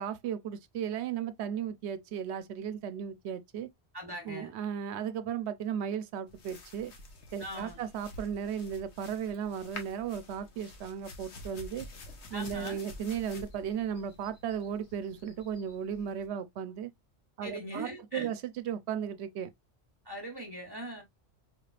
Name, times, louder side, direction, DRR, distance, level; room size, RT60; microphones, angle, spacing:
voice 1, 0.0-3.7 4.3-6.9 7.3-11.9 12.3-16.9 17.4-19.5, right 8 dB, 80° right, 0.9 m, -35 dB
voice 2, 3.9-4.5 7.4-7.8 12.3-12.8 17.4-18.3 20.0-21.0, equal, 25° right, 1.1 m, -41 dB
sound 1, 6.3-16.3, left 2 dB, 85° left, 1.3 m, -49 dB
4.7 x 3.3 x 2.4 m
omnidirectional pair, 1.1 m